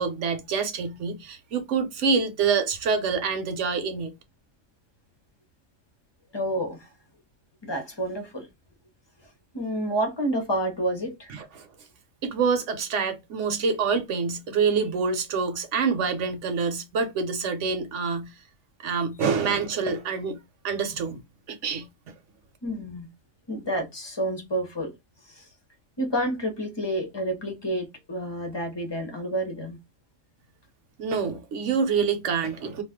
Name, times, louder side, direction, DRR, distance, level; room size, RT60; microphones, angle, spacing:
voice 1, 0.0-4.1 11.3-11.7 12.2-18.3 18.8-20.4 20.6-21.2 21.5-21.8 31.0-32.8, right 5 dB, 65° right, 1.0 m, -26 dB
voice 2, 6.3-6.9 7.6-8.5 9.5-11.3 22.6-23.1 23.5-24.9 25.3-25.5 26.0-29.8, right 1 dB, 25° left, 0.7 m, -29 dB
2.4 x 2.4 x 3.5 m
omnidirectional pair, 1.4 m